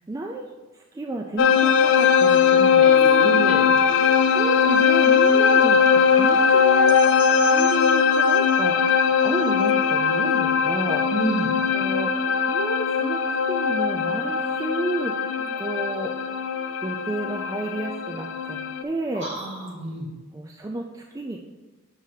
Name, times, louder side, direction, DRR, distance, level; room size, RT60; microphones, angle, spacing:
voice 1, 0.0-2.9 3.2-11.0 11.7-13.2 13.5-16.1 16.8-19.3 20.3-21.5, right 2 dB, 15° right, 1 dB, 0.3 m, -32 dB
sound 1, 1.4-18.8, left 6 dB, 60° left, 0.4 m, -20 dB
voice 2, 2.8-3.5 11.1-11.5 19.1-20.0, right 1 dB, 55° right, -5 dB, 2.1 m, -29 dB
8.0 x 6.3 x 2.7 m, 1.2 s
head